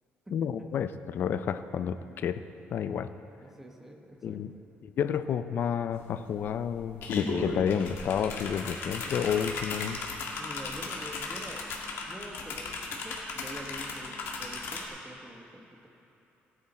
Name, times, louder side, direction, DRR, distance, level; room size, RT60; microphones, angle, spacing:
voice 1, 0.3-2.4 2.7-3.1 4.2-4.5 4.8-10.0, left 8 dB, 55° left, 12 dB, 0.5 m, -30 dB
voice 2, 3.4-4.4 7.2-7.5 10.3-11.6 12.0-15.9, equal, 10° right, 2 dB, 1.2 m, -46 dB
sound 1, 5.9-6.0 6.3-14.9, left 4 dB, 70° left, 1.8 m, -36 dB
16.5 x 9.8 x 4.3 m, 2.9 s
cardioid pair, 145°, 4 cm